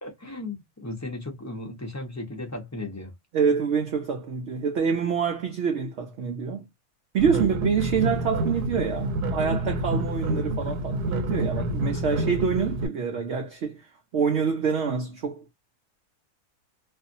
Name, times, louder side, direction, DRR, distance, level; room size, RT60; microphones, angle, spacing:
voice 1, 0.0-3.1, left 2 dB, 15° left, 0.5 m, -36 dB
voice 2, 3.3-6.6 7.1-13.9 14.1-15.5, right 6 dB, 65° right, 0.7 m, -26 dB
sound 1, 7.2-12.9, right 1 dB, 85° right, 1.2 m, -28 dB
2.6 x 2.4 x 2.6 m
omnidirectional pair, 1.6 m